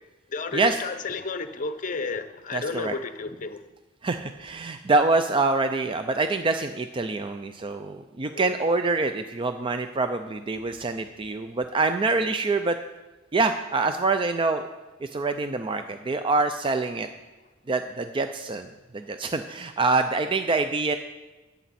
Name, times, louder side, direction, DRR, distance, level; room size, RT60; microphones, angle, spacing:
voice 1, 0.3-3.6 8.3-8.5, left 4 dB, 40° left, 0.7 m, -32 dB
voice 2, 2.5-3.0 4.0-12.8 13.3-14.7 15.0-17.1 17.7-21.0, right 3 dB, 25° right, 0.4 m, -25 dB
13.5 x 9.2 x 4.2 m
head